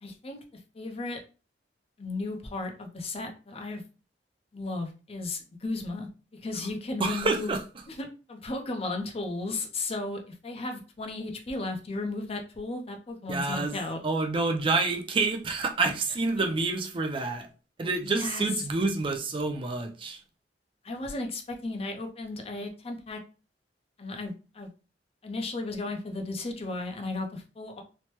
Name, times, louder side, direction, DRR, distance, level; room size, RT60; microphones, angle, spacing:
voice 1, 0.0-1.2 2.0-3.8 4.5-6.1 6.4-7.6 7.9-14.0 16.4-16.5 18.0-18.4 20.8-23.2 24.0-24.7 25.2-27.8, left 2 dB, 35° left, 0.5 m, -35 dB
voice 2, 7.0-7.6 13.3-13.7 14.0-17.5 17.8-20.2, right 3 dB, 30° right, 0.4 m, -28 dB
3.1 x 2.1 x 2.9 m
head